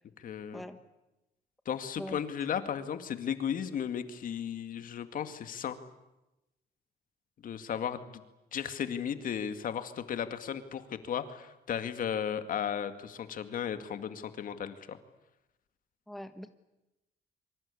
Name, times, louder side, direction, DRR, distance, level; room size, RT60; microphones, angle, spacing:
voice 1, 0.2-0.6 1.7-5.8 7.4-8.2 8.5-15.0, left 8 dB, 55° left, 9 dB, 2.2 m, -35 dB
voice 2, 16.1-16.5, equal, ahead, 8 dB, 1.3 m, -42 dB
27.0 x 25.0 x 8.5 m, 0.93 s
cardioid pair, 140°, 17 cm